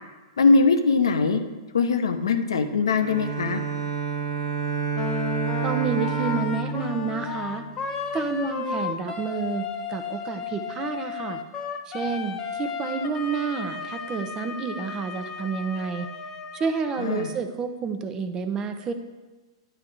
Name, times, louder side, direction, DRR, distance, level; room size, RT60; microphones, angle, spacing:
voice 1, 0.4-1.4 1.7-3.6 17.0-17.3, left 4 dB, 75° left, 7 dB, 0.7 m, -21 dB
Bowed string instrument, 2.9-8.1, right 6 dB, 70° right, 1.0 m, -29 dB
Wind instrument woodwind instrument, 4.9-17.4, left 6 dB, 25° left, 0.8 m, -34 dB
voice 2, 5.6-7.6 8.1-11.4 11.9-16.1 16.5-18.9, right 5 dB, 25° right, 7 dB, 0.7 m, -29 dB
10.0 x 3.7 x 6.1 m, 1.2 s
figure-of-eight pair, 105°, 3 cm